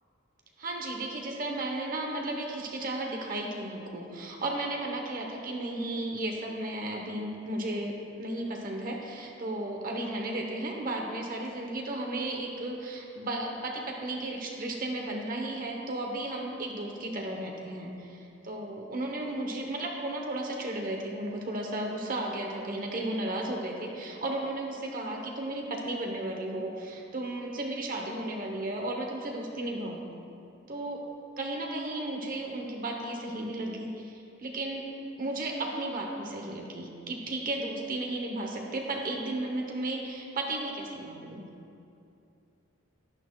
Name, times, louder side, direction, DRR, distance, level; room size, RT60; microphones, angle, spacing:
voice 1, 0.6-30.0 30.7-31.0 31.4-34.9 35.2-41.4, right 1 dB, 45° right, 0 dB, 0.9 m, -34 dB
11.5 x 10.5 x 2.3 m, 2.7 s
head